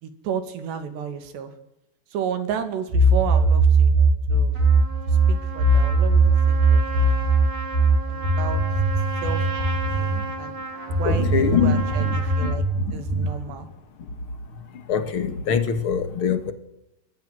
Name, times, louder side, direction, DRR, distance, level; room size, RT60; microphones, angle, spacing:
voice 1, 0.0-1.5 2.1-4.6 5.1-7.1 7.4-7.5 8.1-8.6 9.2-9.5 10.0-10.5 10.9-12.6 12.9-13.7, right 7 dB, 85° right, 4.6 m, -32 dB
sound 1, 2.9-10.2 10.9-13.4, right 3 dB, 60° right, 6.9 m, -19 dB
Trumpet, 4.5-12.6, right 3 dB, 30° right, 3.1 m, -34 dB
voice 2, 11.0-11.8 12.4-12.5 13.2-13.3 14.9-16.5, left 7 dB, 50° left, 1.7 m, -23 dB
22.0 x 15.0 x 9.5 m
omnidirectional pair, 4.8 m